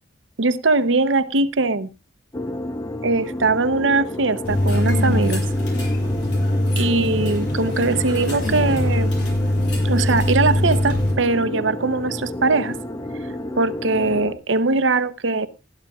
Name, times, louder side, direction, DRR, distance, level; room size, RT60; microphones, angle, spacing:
voice 1, 0.4-1.9 3.0-5.4 6.8-9.1 9.8-12.8 13.6-15.5, right 3 dB, 70° right, 0.8 m, -21 dB
sound 1, 2.3-14.3, left 1 dB, 20° left, 0.8 m, -31 dB
sound 2, 4.4-11.1, left 1 dB, 60° left, 7.1 m, -22 dB
20.0 x 12.5 x 2.4 m
head